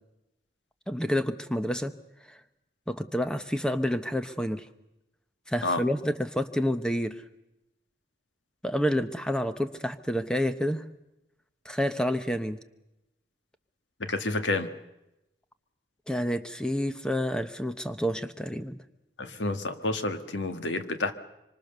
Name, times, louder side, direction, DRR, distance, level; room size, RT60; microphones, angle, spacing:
voice 1, 0.9-1.9 2.9-4.7 5.5-7.2 8.6-10.8 11.6-12.6 16.1-18.8, equal, 5° left, 9 dB, 1.0 m, -29 dB
voice 2, 14.0-14.7 19.2-21.1, left 2 dB, 90° left, 8 dB, 1.8 m, -29 dB
25.5 x 25.0 x 6.8 m, 0.92 s
head